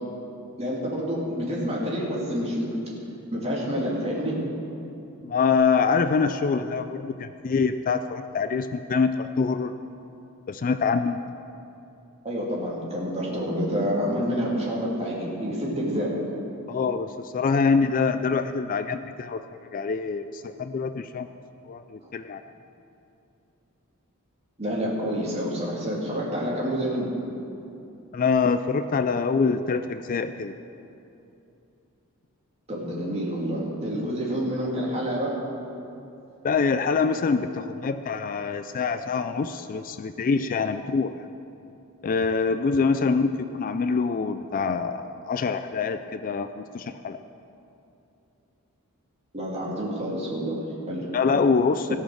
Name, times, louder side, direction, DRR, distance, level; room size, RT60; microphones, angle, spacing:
voice 1, 0.6-2.7 3.3-4.4 12.2-16.2 22.0-22.1 24.6-27.1 32.7-35.3 49.3-50.6 50.9-51.0, equal, 30° right, -5 dB, 2.7 m, -28 dB
voice 2, 5.2-9.7 10.5-11.2 16.7-19.4 19.7-21.3 21.6-22.4 28.1-30.5 36.4-41.1 42.0-47.2 51.1-51.9, left 5 dB, 40° left, 10 dB, 0.3 m, -25 dB
17.0 x 6.4 x 6.4 m, 2.8 s
head